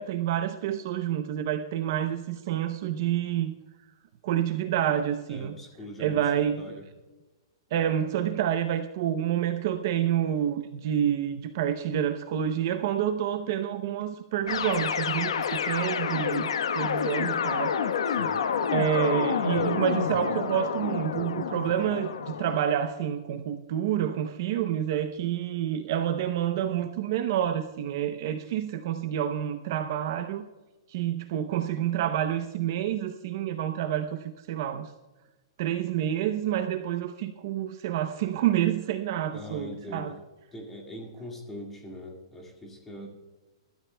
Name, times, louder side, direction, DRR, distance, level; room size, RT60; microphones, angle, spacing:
voice 1, 0.0-3.5 4.2-5.5 6.0-6.6 7.7-17.8 18.7-30.5 30.9-34.9 35.6-40.2, right 10 dB, 40° right, 8 dB, 0.6 m, -28 dB
voice 2, 5.3-6.8 18.1-18.4 39.3-40.2 40.5-43.1, left 1 dB, 10° left, 0 dB, 1.9 m, -42 dB
sound 1, 14.5-22.6, left 7 dB, 85° left, 1.0 m, -28 dB
22.5 x 13.5 x 2.2 m, 1.1 s
hypercardioid pair, 180°, 3 cm